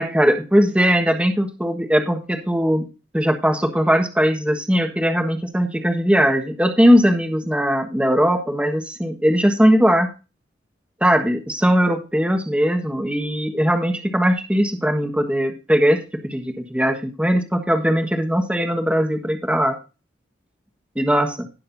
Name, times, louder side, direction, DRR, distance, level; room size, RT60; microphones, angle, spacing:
voice 1, 0.0-2.9 3.1-10.1 11.0-19.8 20.9-21.3, equal, 5° right, 3 dB, 1.4 m, -19 dB
17.5 x 6.5 x 2.6 m, 0.30 s
head